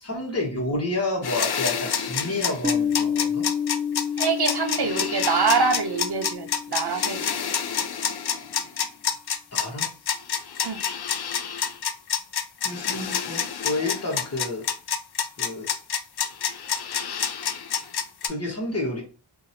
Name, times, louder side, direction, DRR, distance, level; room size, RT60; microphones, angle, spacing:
voice 1, 0.0-3.5 9.5-9.9 12.6-14.7 15.4-15.7 18.2-19.0, left 2 dB, 30° left, 1.3 m, -29 dB
sound 1, 1.2-18.3, left 7 dB, 55° left, 0.5 m, -28 dB
Piano, 2.6-8.0, left 7 dB, 20° right, 0.4 m, -30 dB
voice 2, 4.2-7.3 10.6-10.8, right 4 dB, 55° right, 0.7 m, -25 dB
2.9 x 2.7 x 2.7 m
wide cardioid pair, 70°, 46 cm